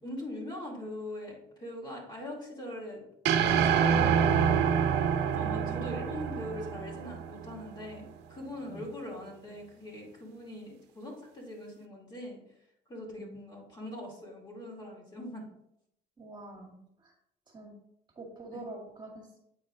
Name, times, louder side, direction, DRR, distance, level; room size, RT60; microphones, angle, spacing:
voice 1, 0.0-3.0 3.5-4.7 5.3-12.4 12.9-15.5 18.5-18.6, left 1 dB, 25° left, -2 dB, 2.4 m, -42 dB
sound 1, 3.3-7.6, right 7 dB, 80° right, 0.7 m, -26 dB
voice 2, 5.2-6.0 8.6-8.8 13.1-13.6 16.2-17.1 17.5-17.7 18.2-19.4, right 2 dB, 25° right, -1 dB, 2.0 m, -46 dB
8.1 x 4.6 x 3.8 m, 0.76 s
cardioid pair, 110°, 17 cm